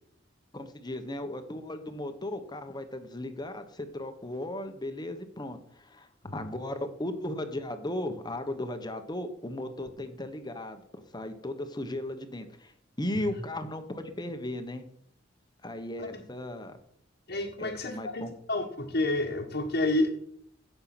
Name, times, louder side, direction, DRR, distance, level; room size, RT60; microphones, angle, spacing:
voice 1, 0.5-10.8 11.1-12.7 13.0-14.8 15.6-16.7 17.6-18.3, left 1 dB, 25° left, 8 dB, 1.3 m, -36 dB
voice 2, 17.3-20.1, left 2 dB, 55° left, -2 dB, 1.5 m, -30 dB
16.0 x 6.8 x 6.0 m, 0.69 s
head